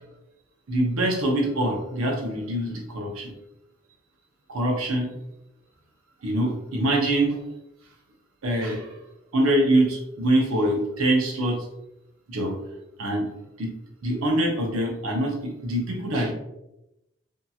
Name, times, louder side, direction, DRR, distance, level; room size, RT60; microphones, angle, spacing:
voice 1, 0.7-3.3 4.5-5.2 6.2-7.4 8.4-9.0 9.3-11.6 12.3-12.6 13.0-13.3 13.6-13.7 14.0-16.3, right 1 dB, 85° right, 1 dB, 0.7 m, -24 dB
2.7 x 2.3 x 2.7 m, 0.89 s
head